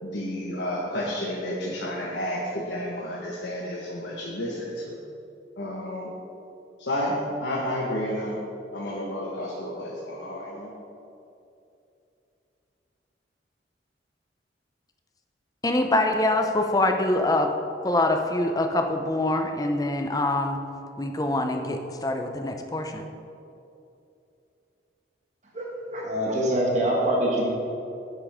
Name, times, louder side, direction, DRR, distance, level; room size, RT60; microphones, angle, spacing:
voice 1, 0.0-5.0 5.6-6.1 6.8-8.4 8.7-10.7, left 1 dB, 75° left, -4 dB, 1.4 m, -31 dB
voice 2, 15.6-17.5 17.8-20.6 21.0-23.1, left 2 dB, 20° left, 5 dB, 0.6 m, -24 dB
voice 3, 25.5-27.5, right 1 dB, 40° right, -3 dB, 1.5 m, -25 dB
10.5 x 8.4 x 3.6 m, 2.7 s
head